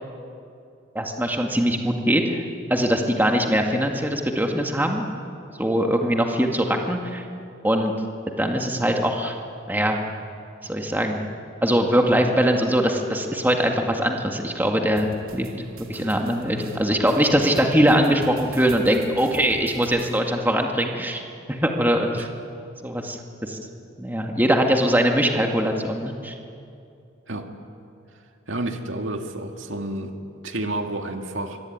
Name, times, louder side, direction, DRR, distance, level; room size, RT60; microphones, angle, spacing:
voice 1, 0.9-2.4 2.7-5.1 5.6-7.3 7.6-7.9 8.4-9.3 9.7-10.0 10.6-11.3 11.6-15.5 15.9-21.2 21.5-22.3 22.8-23.6 24.0-26.3, equal, 10° right, 2 dB, 2.0 m, -22 dB
sound 1, 15.0-20.2, right 2 dB, 85° right, 3.4 m, -41 dB
voice 2, 28.5-31.6, right 1 dB, 65° right, 4 dB, 2.2 m, -30 dB
25.0 x 25.0 x 9.5 m, 2.5 s
head